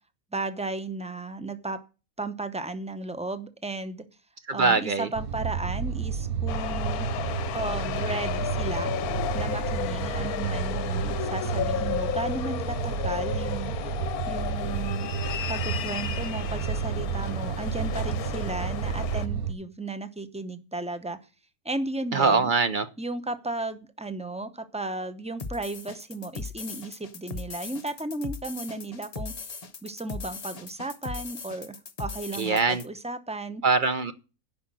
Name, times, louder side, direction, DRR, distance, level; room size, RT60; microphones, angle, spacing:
voice 1, 0.3-1.8 2.2-4.0 4.5-7.1 7.5-8.9 9.3-13.7 14.3-21.2 21.6-22.5 23.0-29.3 29.8-33.6, right 2 dB, 5° right, 11 dB, 0.6 m, -34 dB
voice 2, 4.5-5.1 22.1-22.9 32.3-32.8 33.6-34.1, right 4 dB, 45° right, 12 dB, 0.7 m, -23 dB
sound 1, 5.1-19.5, right 7 dB, 70° right, 1.2 m, -31 dB
sound 2, 6.5-19.3, left 10 dB, 70° left, 1.1 m, -33 dB
sound 3, 25.4-32.9, left 4 dB, 35° left, 0.6 m, -38 dB
9.9 x 5.8 x 7.6 m, 0.32 s
omnidirectional pair, 1.7 m